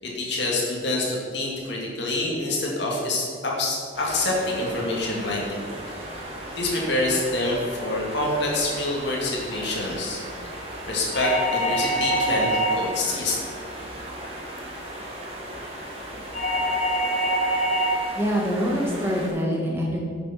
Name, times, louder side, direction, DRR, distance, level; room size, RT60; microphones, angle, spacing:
voice 1, 0.0-6.2 6.5-10.2 10.9-13.4, left 2 dB, 65° left, -3 dB, 2.3 m, -26 dB
sound 1, 3.9-19.3, right 1 dB, 30° right, 1.9 m, -37 dB
sound 2, 11.1-13.1 16.3-18.1, right 1 dB, 40° left, 0.8 m, -24 dB
voice 2, 18.2-20.0, equal, 10° right, -3 dB, 1.9 m, -25 dB
9.5 x 6.9 x 5.9 m, 2.2 s
head